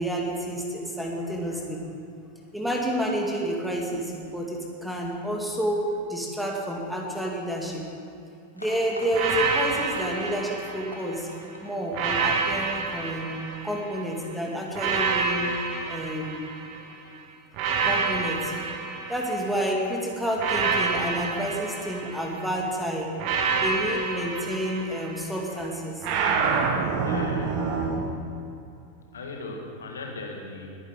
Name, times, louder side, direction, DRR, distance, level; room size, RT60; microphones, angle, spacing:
voice 1, 0.0-1.9 2.5-5.8 6.1-7.9 8.5-11.3 11.6-13.4 13.6-15.5 15.9-16.4 17.8-18.5 19.1-23.1 23.6-26.0, equal, ahead, -1 dB, 2.0 m, -29 dB
sound 1, 8.5-14.1 14.4-14.5 14.7-14.8 15.0-15.1, left 1 dB, 85° left, 1.9 m, -45 dB
sound 2, 9.1-11.3 11.9-14.1 14.7-16.9 17.5-19.7 20.4-22.5 23.2-25.4 26.0-28.1, right 5 dB, 40° right, 1.4 m, -28 dB
voice 2, 27.0-27.9 29.1-30.7, left 3 dB, 65° left, 1 dB, 1.8 m, -38 dB
20.5 x 10.0 x 3.8 m, 2.7 s
figure-of-eight pair, 90°, 0 cm